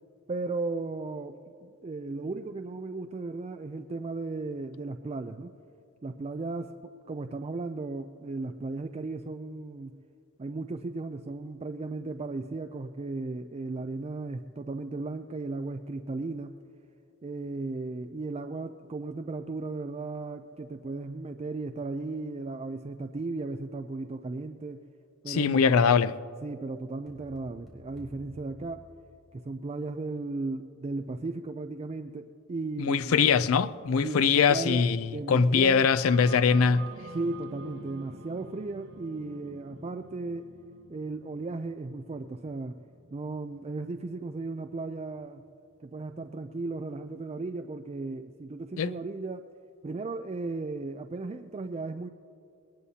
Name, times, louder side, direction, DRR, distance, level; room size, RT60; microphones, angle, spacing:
voice 1, 0.3-5.6 6.0-9.9 10.4-16.6 17.2-24.8 25.2-25.6 26.4-28.9 29.3-33.3 34.0-36.0 37.1-40.5 40.9-42.7 43.1-45.4 45.8-49.5 49.8-52.1, right 3 dB, 30° right, 0.4 m, -36 dB
voice 2, 25.3-26.1 32.8-36.9 48.8-48.9, left 6 dB, 80° left, 0.4 m, -22 dB
sound 1, 27.1-29.6, left 1 dB, ahead, 4.1 m, -52 dB
sound 2, 36.1-45.7, right 3 dB, 80° right, 1.2 m, -48 dB
21.0 x 19.0 x 2.8 m
head